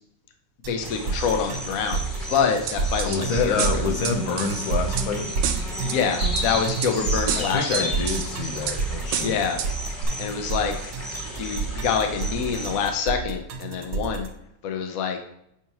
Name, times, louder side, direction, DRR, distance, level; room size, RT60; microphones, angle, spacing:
sound 1, 0.6-14.3, right 4 dB, 60° right, 1.0 m, -29 dB
voice 1, 0.7-2.0 2.3-3.9 5.8-7.9 9.2-9.6 10.2-10.7 11.3-14.3 14.6-15.2, left 6 dB, 55° left, 5 dB, 1.1 m, -26 dB
sound 2, 0.8-12.9, equal, 10° left, 1.1 m, -33 dB
sound 3, 2.7-3.2 3.6-5.1 5.4-6.0 6.4-6.9 7.3-8.3 8.7-8.8 9.1-9.7 10.0-10.1, right 8 dB, 80° right, 1.3 m, -29 dB
voice 2, 3.0-5.3 7.4-9.4, left 5 dB, 80° left, 4 dB, 1.6 m, -27 dB
7.5 x 5.2 x 2.9 m, 0.76 s
omnidirectional pair, 2.1 m